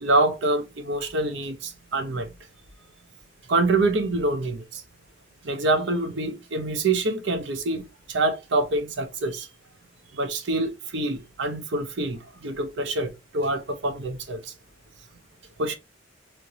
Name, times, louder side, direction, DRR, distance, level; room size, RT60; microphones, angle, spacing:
voice 1, 0.0-2.3 3.5-4.8 5.4-7.8 8.1-9.5 10.1-14.5 15.6-15.8, right 2 dB, 65° right, 0.6 m, -26 dB
3.2 x 2.9 x 2.6 m
head